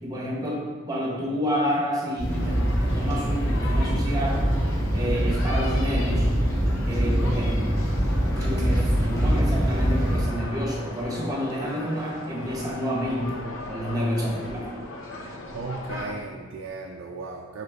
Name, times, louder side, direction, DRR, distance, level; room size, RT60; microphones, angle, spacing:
voice 1, 0.0-4.5 4.9-6.3 6.9-7.5 8.3-14.7, equal, 20° right, -3 dB, 0.9 m, -29 dB
sound 1, 2.2-10.2, equal, 15° left, 1.0 m, -24 dB
sound 2, 2.3-16.1, left 1 dB, 70° left, 0.6 m, -38 dB
voice 2, 15.5-17.6, right 3 dB, 75° right, 1 dB, 0.4 m, -35 dB
4.0 x 4.0 x 3.3 m, 1.5 s
head